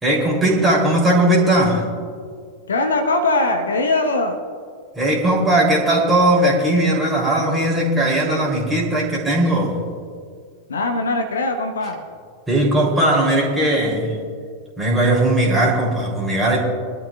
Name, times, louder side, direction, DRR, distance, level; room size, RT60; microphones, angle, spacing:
voice 1, 0.0-1.9 4.9-9.8 12.5-14.2 14.8-16.6, right 1 dB, 10° right, -4 dB, 3.2 m, -18 dB
voice 2, 2.7-4.4 10.7-12.0, left 2 dB, 70° left, 5 dB, 1.1 m, -21 dB
22.5 x 12.0 x 2.4 m, 2.1 s
figure-of-eight pair, 90°, 0 cm